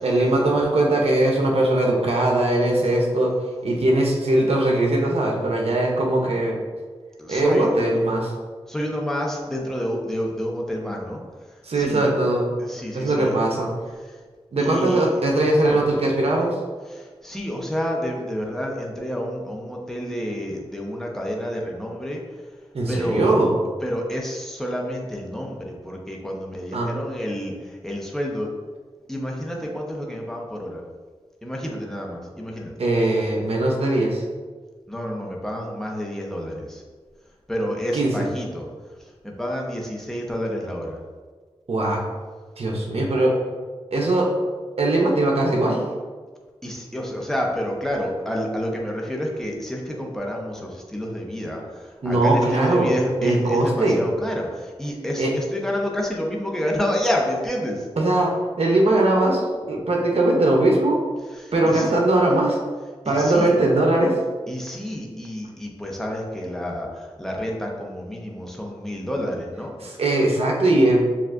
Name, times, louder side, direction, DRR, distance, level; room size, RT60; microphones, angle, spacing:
voice 1, 0.0-3.3 3.6-6.6 7.3-8.3 11.6-12.5 12.9-13.7 14.5-16.5 22.7-23.5 26.7-26.9 32.8-34.2 37.9-38.3 41.7-42.0 42.6-43.3 43.9-44.3 44.8-45.8 52.0-52.9 53.2-54.0 55.2-55.3 58.0-58.3 58.6-61.0 61.5-62.6 63.1-64.2 69.8-71.0, right 2 dB, 70° right, -1 dB, 0.7 m, -20 dB
voice 2, 7.2-7.7 8.7-11.2 11.7-12.1 12.6-13.3 14.6-15.1 15.6-15.8 17.2-22.2 22.9-23.3 23.8-27.5 27.8-28.5 29.1-30.8 31.4-32.7 34.9-36.8 37.5-38.7 39.2-41.0 46.6-51.6 52.0-57.8 61.3-61.9 63.0-63.6 64.5-66.9 67.2-69.7, equal, 5° left, -1 dB, 0.8 m, -29 dB
6.9 x 2.4 x 2.5 m, 1.5 s
cardioid pair, 50°, 11 cm